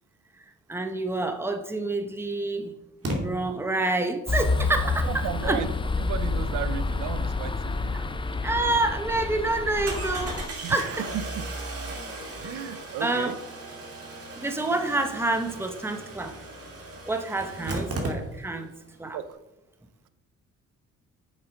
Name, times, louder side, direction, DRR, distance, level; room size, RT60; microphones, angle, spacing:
voice 1, 0.4-2.7 3.0-5.6 7.9-8.1 8.4-10.9 12.4-13.4 14.4-16.4 17.1-18.7 19.0-19.2, right 2 dB, 10° right, 6 dB, 1.0 m, -28 dB
Engine starting, 1.5-1.6 3.0-3.2 8.2-8.3 8.7-8.8 9.9-18.7 18.9-19.0 19.2-19.3, right 2 dB, 50° right, 2.6 m, -36 dB
sound 1, 4.3-10.5, left 3 dB, 15° left, 0.6 m, -28 dB
voice 2, 5.0-5.7 6.0-8.0 10.6-11.5 12.4-13.4 19.1-19.4, right 9 dB, 80° right, 13 dB, 0.7 m, -34 dB
7.6 x 7.1 x 5.2 m, 0.95 s
cardioid pair, 90°, 30 cm